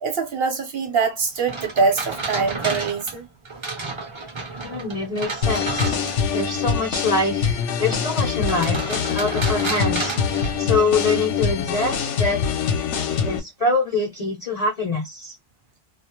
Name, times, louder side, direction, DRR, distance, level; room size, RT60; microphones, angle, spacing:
voice 1, 0.0-3.3, right 4 dB, 55° right, 0.9 m, -23 dB
sound 1, 1.4-6.4 8.3-11.1, right 3 dB, 35° right, 0.5 m, -31 dB
voice 2, 4.6-6.0 6.3-12.4 13.2-15.4, left 3 dB, 40° left, 0.6 m, -25 dB
sound 2, 5.4-13.4, left 7 dB, 75° left, 0.9 m, -24 dB
2.3 x 2.0 x 2.9 m
omnidirectional pair, 1.3 m